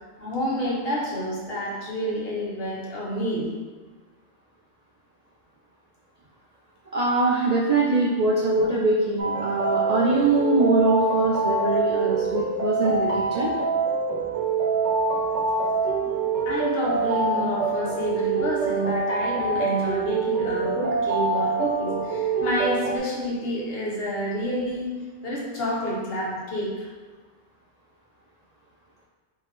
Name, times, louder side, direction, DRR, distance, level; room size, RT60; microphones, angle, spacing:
voice 1, 0.2-3.5 16.0-16.1 16.4-24.9 25.2-26.9, equal, 60° left, -5 dB, 1.1 m, -29 dB
voice 2, 6.9-13.5, right 2 dB, 55° right, -5 dB, 0.4 m, -22 dB
sound 1, 9.2-23.0, right 4 dB, 75° right, 0.9 m, -25 dB
3.4 x 3.4 x 3.2 m, 1.4 s
omnidirectional pair, 1.2 m